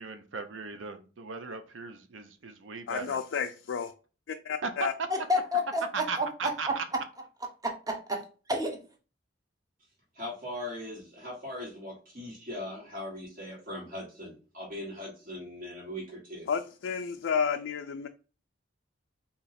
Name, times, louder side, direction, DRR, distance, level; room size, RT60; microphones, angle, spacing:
voice 1, 0.0-3.2 4.6-4.7 5.9-6.8, right 4 dB, 90° right, 0.6 m, -37 dB
voice 2, 2.9-3.9 4.3-4.9 16.5-18.1, left 6 dB, 85° left, 0.4 m, -31 dB
voice 3, 5.1-6.8 7.6-8.8, left 1 dB, 20° right, 0.9 m, -30 dB
voice 4, 10.1-16.5, left 1 dB, 50° right, 1.6 m, -40 dB
3.9 x 2.9 x 4.1 m
head